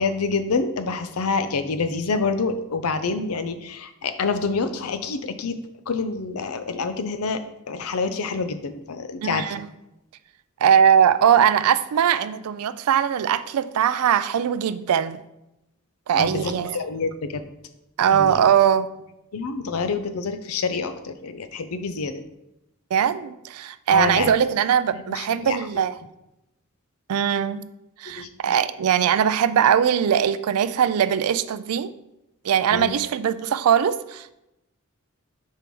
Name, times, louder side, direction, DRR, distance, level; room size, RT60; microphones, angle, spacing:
voice 1, 0.0-5.6 5.9-7.4 7.7-9.5 16.1-17.4 18.1-18.4 19.3-22.2 23.9-24.3 24.9-25.6 28.1-28.3 32.7-32.9, left 4 dB, 80° left, 10 dB, 0.6 m, -27 dB
voice 2, 9.2-9.7 10.6-15.2 16.1-16.8 18.0-18.9 22.9-25.9 27.1-27.6 28.0-31.9 32.4-34.4, right 8 dB, 85° right, 13 dB, 0.4 m, -20 dB
4.6 x 4.4 x 5.3 m, 0.89 s
head